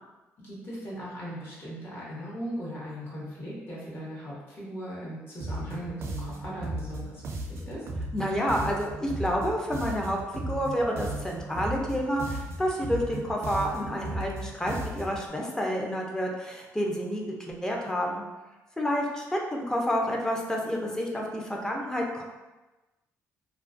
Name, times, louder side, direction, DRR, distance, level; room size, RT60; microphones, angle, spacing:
voice 1, 0.4-7.8, equal, 40° left, -6 dB, 1.0 m, -38 dB
sound 1, 5.4-15.3, right 2 dB, 50° right, 0.4 m, -36 dB
voice 2, 8.1-10.2 10.5-18.2 18.8-22.2, equal, 10° left, -1 dB, 0.5 m, -29 dB
2.3 x 2.3 x 2.4 m, 1.1 s
cardioid pair, 100°, 6 cm